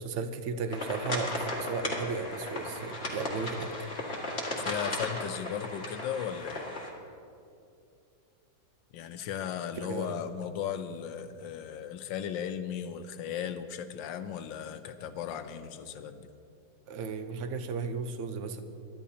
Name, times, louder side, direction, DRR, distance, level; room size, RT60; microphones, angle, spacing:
voice 1, 0.0-3.7 9.8-10.2 16.9-18.6, right 5 dB, 55° right, 8 dB, 0.9 m, -35 dB
sound 1, 0.7-6.9, left 1 dB, 35° left, 2.1 m, -36 dB
voice 2, 4.6-6.7 8.9-16.3, left 8 dB, 85° left, 9 dB, 1.3 m, -36 dB
23.0 x 12.0 x 2.8 m, 2.5 s
omnidirectional pair, 2.0 m